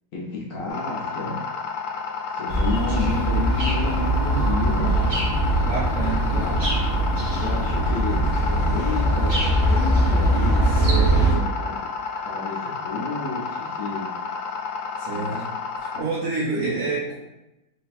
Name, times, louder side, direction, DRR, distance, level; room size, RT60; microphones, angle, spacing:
voice 1, 0.1-1.4 2.3-5.2 6.3-6.6 7.4-10.5 10.9-11.7 12.2-14.1 15.1-15.5 15.9-16.0 16.6-16.8, left 3 dB, 60° left, -4 dB, 0.9 m, -31 dB
sound 1, 0.7-16.0, left 5 dB, 80° left, 1.3 m, -31 dB
sound 2, 2.5-11.3, right 1 dB, 35° right, 0.7 m, -21 dB
voice 2, 5.6-6.3 10.6-11.2 15.0-15.3 15.8-17.1, right 4 dB, 75° right, -6 dB, 0.7 m, -28 dB
3.2 x 2.2 x 4.1 m, 0.94 s
omnidirectional pair, 2.1 m